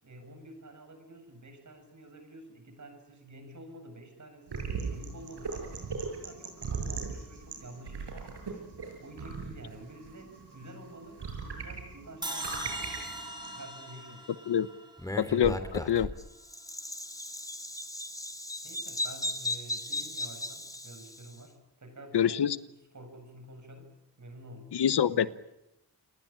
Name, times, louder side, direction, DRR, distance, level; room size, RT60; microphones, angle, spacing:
voice 1, 0.0-5.8 6.1-8.7 9.0-14.3 18.6-23.9 24.2-24.8 25.1-25.3, right 1 dB, 45° right, 7.8 m, -49 dB
sound 1, 4.5-13.6, right 4 dB, 85° right, 7.4 m, -39 dB
sound 2, 12.2-15.4, right 1 dB, 10° right, 5.1 m, -40 dB
Bird vocalization bird call bird song, 15.0-21.3, left 1 dB, 10° left, 2.9 m, -36 dB
voice 2, 15.2-16.1 22.1-22.6 24.7-25.3, left 9 dB, 75° left, 1.0 m, -26 dB
29.5 x 20.0 x 8.8 m
wide cardioid pair, 110°, 40 cm